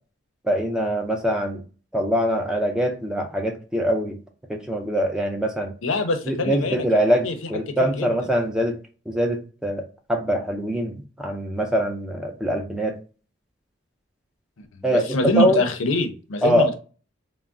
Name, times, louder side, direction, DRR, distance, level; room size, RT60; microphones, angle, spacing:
voice 1, 0.4-1.6 1.9-4.2 4.5-5.7 6.3-8.8 9.1-9.8 10.1-13.0 14.8-15.1 15.4-15.6 16.4-16.7, equal, 5° right, 2 dB, 0.4 m, -23 dB
voice 2, 5.8-6.9 7.2-7.5 7.8-8.1 14.6-16.8, left 2 dB, 80° left, 8 dB, 0.5 m, -25 dB
3.4 x 2.0 x 2.5 m, 0.36 s
head